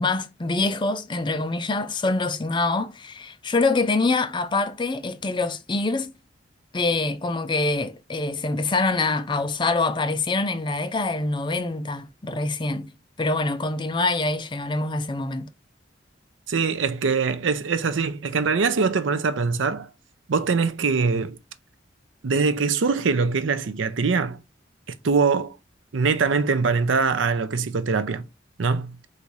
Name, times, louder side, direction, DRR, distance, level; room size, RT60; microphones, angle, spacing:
voice 1, 0.0-6.1 6.7-12.9 13.2-15.5, left 3 dB, 25° left, 0.4 m, -25 dB
voice 2, 16.5-19.9 20.3-21.4 22.2-24.4 25.0-25.6 25.9-28.2 28.6-29.0, right 4 dB, 75° right, 0.5 m, -23 dB
4.1 x 2.6 x 4.6 m
head